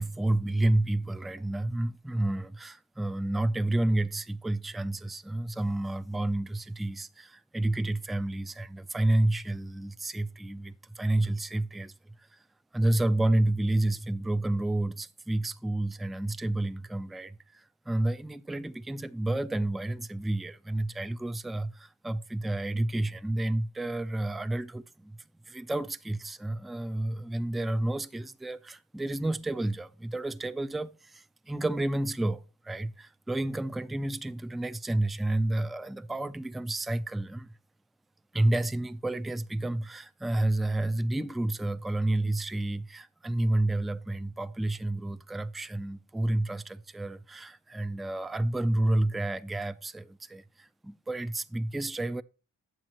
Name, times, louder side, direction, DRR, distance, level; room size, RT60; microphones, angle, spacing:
voice 1, 0.0-12.4 12.7-25.2 25.5-37.5 38.3-52.2, right 1 dB, ahead, 0.3 m, -30 dB
9.3 x 7.7 x 2.9 m
cardioid pair, 110°, 35 cm